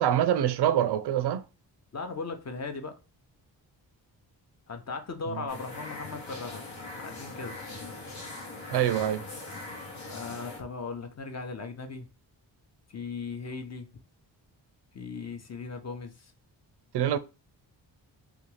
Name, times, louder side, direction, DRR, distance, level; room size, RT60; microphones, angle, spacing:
voice 1, 0.0-1.4 8.7-9.2 16.9-17.2, right 11 dB, 60° right, 0.5 m, -25 dB
voice 2, 1.9-2.9 4.7-7.6 10.1-12.1 12.9-13.9 14.9-16.3, left 4 dB, 35° left, 0.7 m, -38 dB
sound 1, 5.5-10.6, left 2 dB, 80° left, 1.0 m, -41 dB
2.5 x 2.3 x 3.1 m
supercardioid pair, 50°, 46 cm